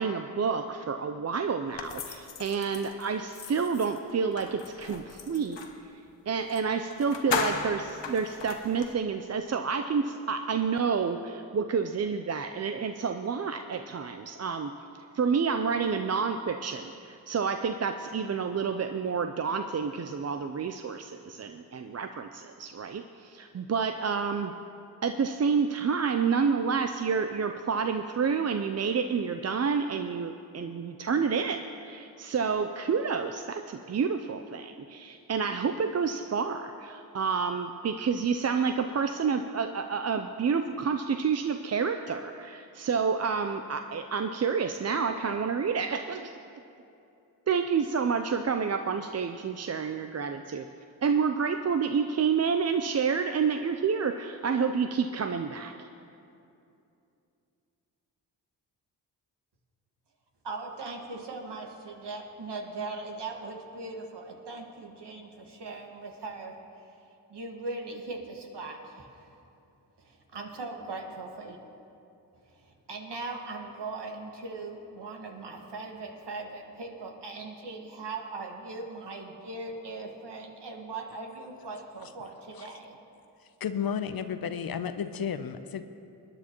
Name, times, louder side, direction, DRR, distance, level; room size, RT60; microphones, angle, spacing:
voice 1, 0.0-5.6 6.3-14.7 15.1-24.5 25.0-46.3 47.5-50.7 51.0-55.7, right 6 dB, 35° right, 7 dB, 0.5 m, -29 dB
sound 1, 1.8-5.8 6.5-6.6 6.9-8.9, left 5 dB, 70° left, 1.0 m, -36 dB
voice 2, 60.4-67.0 67.3-69.3 70.0-71.6 72.4-82.9, right 3 dB, 65° right, 1 dB, 1.9 m, -40 dB
voice 3, 83.6-85.8, left 7 dB, 55° left, 11 dB, 0.7 m, -32 dB
20.5 x 9.8 x 3.0 m, 2.7 s
supercardioid pair, 40°, 45 cm